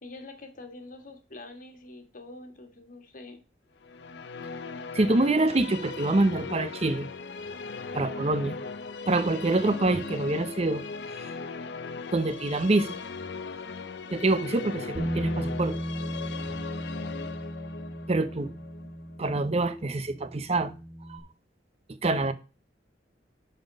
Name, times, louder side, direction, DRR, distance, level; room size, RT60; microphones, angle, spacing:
voice 1, 0.0-3.4, left 2 dB, 50° left, 1.5 m, -45 dB
sound 1, 3.8-19.9, left 4 dB, 70° left, 0.6 m, -39 dB
voice 2, 4.9-7.1 7.9-8.5 9.1-10.8 12.1-12.9 14.1-15.8 18.1-18.5 19.2-20.7 21.1-21.2 21.9-22.3, right 2 dB, 35° right, 0.6 m, -26 dB
Bass guitar, 15.0-21.2, equal, 5° left, 1.1 m, -36 dB
10.0 x 4.1 x 5.2 m
head